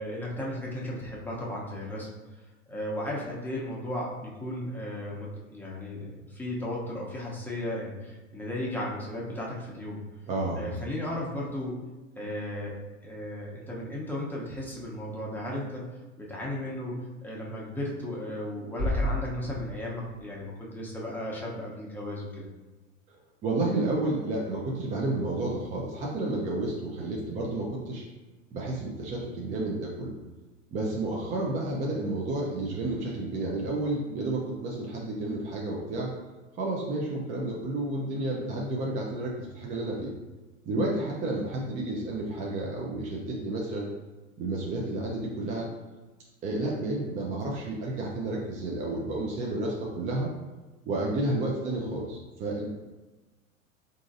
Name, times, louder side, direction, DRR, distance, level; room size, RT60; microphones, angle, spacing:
voice 1, 0.0-2.1 2.7-10.0 10.5-11.8 12.2-12.7 13.0-15.8 16.2-22.5, left 1 dB, 5° left, -5 dB, 0.7 m, -35 dB
voice 2, 10.3-10.7 23.1-23.2 23.4-28.0 28.5-30.1 30.7-36.1 36.5-40.1 40.7-43.9 44.4-45.7 46.4-50.3 50.9-52.7, right 2 dB, 20° right, -2 dB, 0.3 m, -31 dB
sound 1, 18.8-20.7, left 1 dB, 50° right, 0.9 m, -32 dB
3.6 x 2.6 x 2.5 m, 1.2 s
hypercardioid pair, 90°, 40 cm